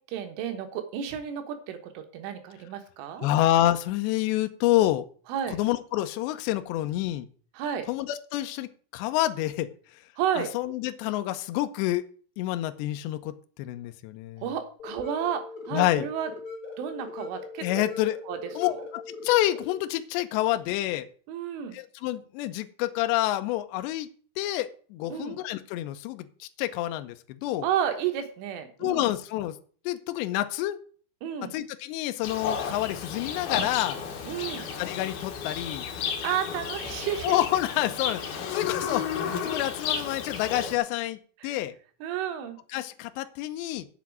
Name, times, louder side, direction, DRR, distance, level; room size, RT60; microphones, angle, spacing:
voice 1, 0.1-3.3 5.3-5.6 7.6-7.9 10.2-10.5 14.4-16.3 16.8-17.7 18.3-18.4 18.7-18.9 21.3-21.8 25.1-25.4 27.6-29.0 31.2-31.6 34.3-34.7 36.2-37.4 41.4-41.5 42.0-42.6, right 9 dB, 75° right, 7 dB, 3.6 m, -31 dB
voice 2, 3.2-5.1 5.5-7.3 7.9-9.7 10.4-12.1 12.4-14.5 15.7-16.1 17.6-18.2 18.6-21.1 21.7-24.1 24.4-27.7 28.8-29.6 29.9-30.8 31.5-34.0 34.8-35.9 37.2-41.7 42.7-43.9, left 14 dB, 85° left, 9 dB, 2.5 m, -28 dB
sound 1, 14.8-19.8, left 3 dB, 35° left, 2.6 m, -40 dB
Livestock farm animals working animals, 32.2-40.8, left 7 dB, 65° left, 2.7 m, -33 dB
8.2 x 7.2 x 7.5 m, 0.43 s
omnidirectional pair, 5.9 m